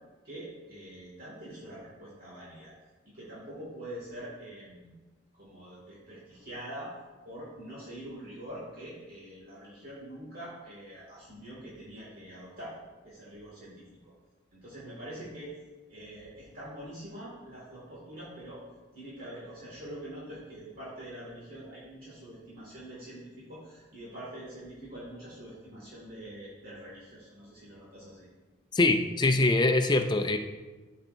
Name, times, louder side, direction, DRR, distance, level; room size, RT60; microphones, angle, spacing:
voice 1, 0.2-2.7 3.1-4.9 5.3-6.9 7.2-12.8 13.0-14.1 14.5-15.5 15.9-18.6 18.9-28.3, right 1 dB, 45° right, -7 dB, 2.1 m, -44 dB
voice 2, 28.7-30.4, left 2 dB, 20° left, 7 dB, 0.4 m, -23 dB
13.0 x 5.6 x 2.6 m, 1.3 s
head